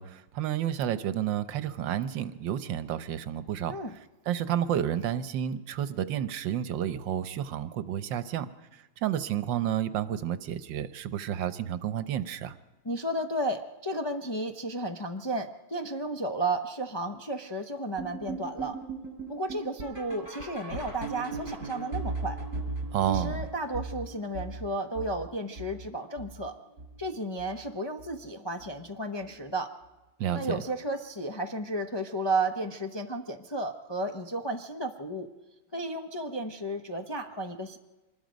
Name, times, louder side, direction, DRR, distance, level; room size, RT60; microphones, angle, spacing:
voice 1, 0.0-3.8 4.3-8.5 9.0-12.5 22.9-23.4 30.2-30.6, right 10 dB, 85° right, 13 dB, 1.5 m, -30 dB
voice 2, 12.8-18.8 19.3-22.4 23.1-26.6 27.0-29.8 30.3-35.3 35.7-37.8, right 1 dB, 25° left, 3 dB, 0.5 m, -33 dB
sound 1, 18.0-27.1 27.4-27.7 28.0-28.1 28.6-28.7 29.2-29.3, right 3 dB, 45° right, 5.1 m, -38 dB
25.0 x 20.5 x 5.2 m, 1.1 s
omnidirectional pair, 2.0 m